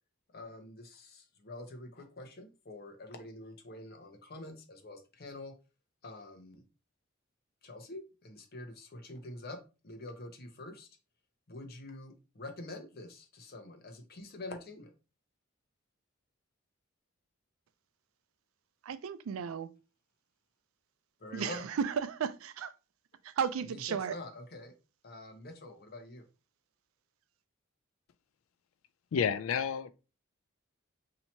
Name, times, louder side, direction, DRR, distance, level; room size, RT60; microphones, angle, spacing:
voice 1, 0.3-5.5 6.0-6.6 7.6-9.6 9.8-10.9 11.5-14.9 21.2-21.7 23.7-24.7 25.0-26.3, left 2 dB, 50° left, 0.8 m, -46 dB
voice 2, 18.8-19.7 21.3-22.7 23.2-24.2, right 7 dB, 80° right, 0.4 m, -34 dB
voice 3, 29.1-29.9, left 7 dB, 80° left, 0.3 m, -30 dB
2.9 x 2.8 x 4.2 m
head